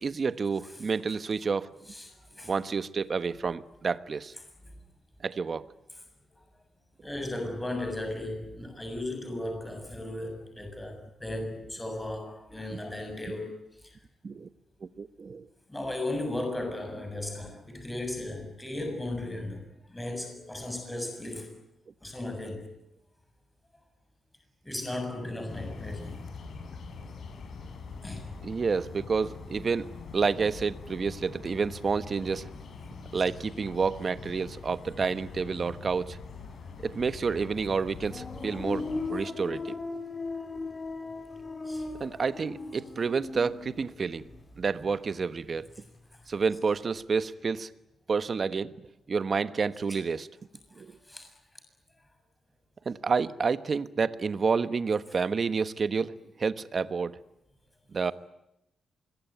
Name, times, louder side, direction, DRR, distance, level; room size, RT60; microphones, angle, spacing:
voice 1, 0.0-1.7 2.5-4.3 5.2-5.7 12.7-12.8 14.2-14.5 15.0-15.5 28.4-32.5 33.1-36.2 36.8-39.7 42.0-44.2 44.6-45.7 46.3-47.7 48.1-50.3 50.8-50.9 52.8-57.2 57.9-58.1, right 5 dB, 40° right, 1.2 m, -29 dB
voice 2, 7.0-13.5 15.7-19.6 19.9-21.5 22.0-22.7 24.6-26.2 28.0-28.3 33.2-33.3 35.7-35.8 41.7-41.9 51.1-51.3, left 1 dB, 10° left, 7.0 m, -36 dB
sound 1, 25.5-39.1, left 5 dB, 60° left, 5.5 m, -44 dB
sound 2, 38.1-45.0 45.2-46.0, left 3 dB, 25° left, 3.9 m, -38 dB
25.5 x 22.5 x 9.3 m
cardioid pair, 125°, 0 cm